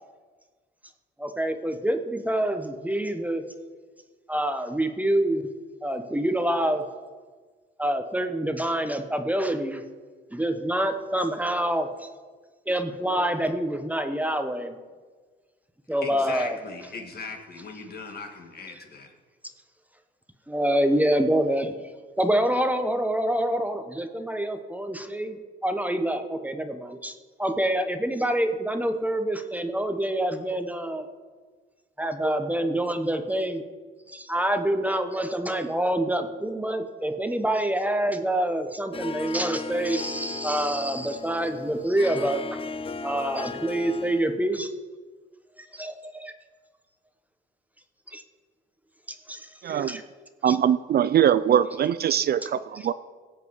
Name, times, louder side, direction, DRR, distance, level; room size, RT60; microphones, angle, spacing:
voice 1, 1.2-3.4 4.3-5.4 5.8-6.8 7.8-9.8 10.3-12.1 12.7-14.8 15.9-16.6 20.5-21.7 22.2-27.1 27.4-31.1 32.0-33.6 34.1-42.4 43.0-44.7 45.6-46.3 48.1-48.2 49.3-50.0 50.5-50.6, right 1 dB, 10° right, 7 dB, 1.1 m, -26 dB
voice 2, 16.0-19.1, left 4 dB, 50° left, 4 dB, 2.0 m, -39 dB
Harp, 38.9-44.4, left 4 dB, 30° left, 0.5 m, -37 dB
voice 3, 49.6-50.0 50.4-52.9, right 9 dB, 50° right, 15 dB, 0.5 m, -22 dB
17.5 x 7.7 x 4.8 m, 1.4 s
cardioid pair, 90°, 20 cm